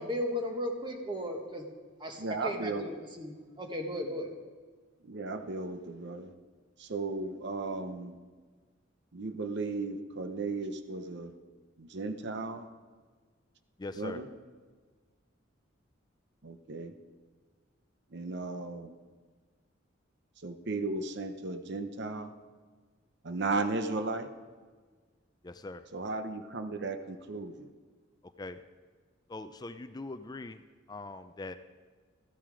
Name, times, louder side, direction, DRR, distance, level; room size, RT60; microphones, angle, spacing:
voice 1, 0.0-1.6 2.0-4.3, left 1 dB, 25° right, 3 dB, 1.5 m, -36 dB
voice 2, 2.2-2.9 5.0-6.3 6.8-8.2 9.1-11.4 11.8-12.7 13.9-14.3 16.4-16.9 18.1-19.0 20.4-22.3 23.2-24.3 25.9-27.7, right 3 dB, 60° right, 8 dB, 0.8 m, -35 dB
voice 3, 13.8-14.2 25.4-25.8 28.4-28.6 29.3-30.6 30.9-31.6, left 2 dB, 20° left, 10 dB, 0.4 m, -41 dB
14.5 x 10.5 x 5.0 m, 1.5 s
head